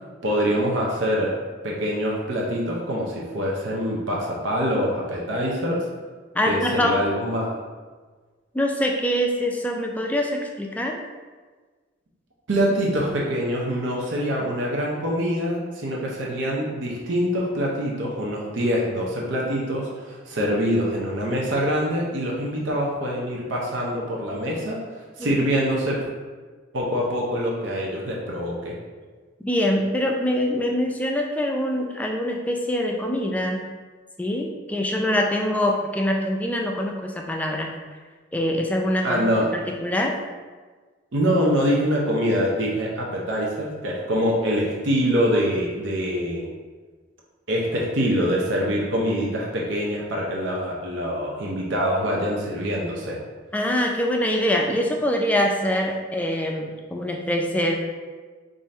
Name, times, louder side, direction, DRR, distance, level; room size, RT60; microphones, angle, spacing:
voice 1, 0.2-1.4 1.6-5.8 6.5-7.6 12.5-26.0 26.7-28.8 39.0-39.5 41.1-46.5 47.5-53.2, equal, 75° right, -3 dB, 0.7 m, -24 dB
voice 2, 6.3-7.1 8.5-11.0 25.2-25.4 29.4-33.7 34.2-37.7 38.3-40.2 53.5-57.8, left 1 dB, 10° left, 1 dB, 0.3 m, -24 dB
3.7 x 2.6 x 4.1 m, 1.4 s
head